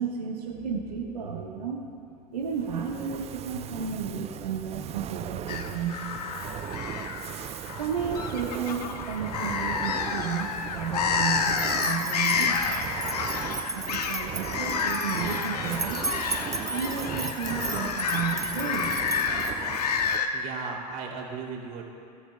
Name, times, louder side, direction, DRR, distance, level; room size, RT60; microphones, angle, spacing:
voice 1, 0.0-1.9 2.3-6.0 6.3-6.4 7.7-12.6 13.7-16.1 16.7-19.0, right 6 dB, 85° right, -3 dB, 1.3 m, -33 dB
Fire, 2.4-20.4, right 11 dB, 35° right, 0.4 m, -38 dB
sound 1, 5.5-20.3, left 6 dB, 80° left, 0.9 m, -30 dB
sound 2, 11.5-19.8, right 3 dB, 15° right, 1.1 m, -36 dB
voice 2, 20.3-21.8, right 5 dB, 50° right, -1 dB, 2.8 m, -36 dB
22.5 x 13.0 x 2.3 m, 2.4 s
hypercardioid pair, 85°, 20 cm